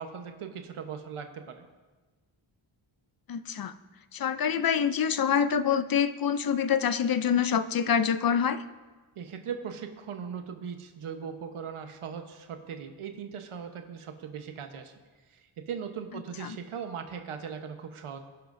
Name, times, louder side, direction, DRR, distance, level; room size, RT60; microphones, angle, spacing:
voice 1, 0.0-1.7 9.2-14.9 15.3-18.2, right 7 dB, 80° right, 5 dB, 1.2 m, -39 dB
voice 2, 3.3-3.7 4.1-8.6 16.4-16.6, left 7 dB, 45° left, 12 dB, 0.6 m, -26 dB
23.5 x 10.5 x 2.7 m, 1.3 s
wide cardioid pair, 140°, 49 cm